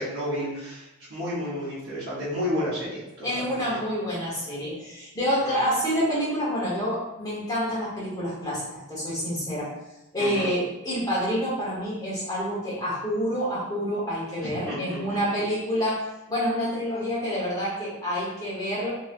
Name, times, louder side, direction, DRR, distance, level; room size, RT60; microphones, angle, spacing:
voice 1, 0.0-3.8 5.4-5.6 10.2-10.5 14.4-15.2, left 1 dB, 55° right, -12 dB, 0.9 m, -32 dB
voice 2, 3.2-9.7 10.1-18.9, equal, 15° left, -8 dB, 1.1 m, -28 dB
3.0 x 2.8 x 2.5 m, 0.96 s
head